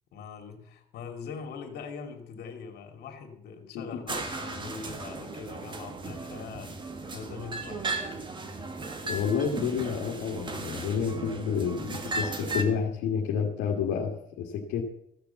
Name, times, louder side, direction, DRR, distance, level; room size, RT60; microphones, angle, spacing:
voice 1, 0.1-6.7 7.1-8.2, left 6 dB, 70° left, 5 dB, 2.7 m, -42 dB
sound 1, 4.1-12.6, right 3 dB, 30° right, 1.7 m, -36 dB
voice 2, 9.0-14.8, left 6 dB, 90° left, -1 dB, 1.9 m, -29 dB
15.0 x 6.9 x 7.0 m, 0.75 s
cardioid pair, 110°, 17 cm